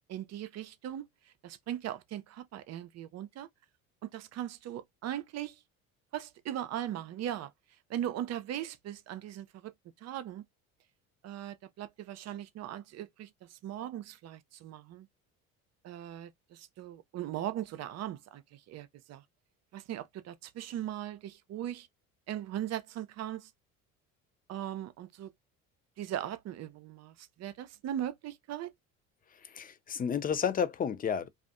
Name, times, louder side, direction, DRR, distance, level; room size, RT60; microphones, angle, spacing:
voice 1, 0.1-1.1 1.4-3.5 4.0-5.6 6.1-7.5 7.9-9.7 10.0-10.4 11.2-15.1 15.8-19.2 19.7-21.9 22.3-23.5 24.5-25.3 26.0-28.7, right 11 dB, 40° right, 0.5 m, -39 dB
voice 2, 29.3-31.3, left 7 dB, 20° left, 0.4 m, -31 dB
2.5 x 2.3 x 2.5 m
hypercardioid pair, 60°, 42 cm